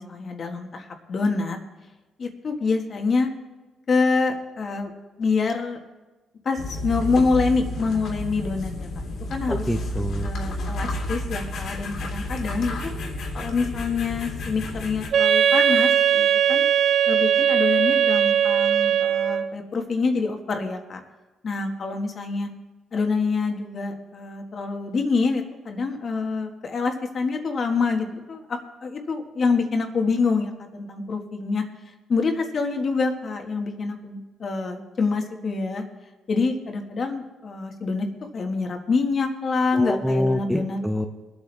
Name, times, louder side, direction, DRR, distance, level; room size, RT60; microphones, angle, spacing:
voice 1, 0.0-1.6 2.2-3.3 3.9-4.9 5.2-5.8 6.4-8.9 9.3-9.7 10.2-12.9 13.3-16.7 17.1-21.0 21.4-22.5 22.9-31.6 32.1-35.8 36.3-38.1 38.3-40.8, left 4 dB, 45° left, 4 dB, 1.6 m, -26 dB
sound 1, 6.6-15.1, left 1 dB, 70° left, 2.5 m, -31 dB
voice 2, 9.5-10.3 39.7-41.1, left 1 dB, ahead, 3 dB, 0.9 m, -25 dB
Wind instrument woodwind instrument, 15.1-19.6, right 9 dB, 60° right, 0.6 m, -19 dB
22.5 x 8.4 x 3.4 m, 1.2 s
cardioid pair, 90°, 0 cm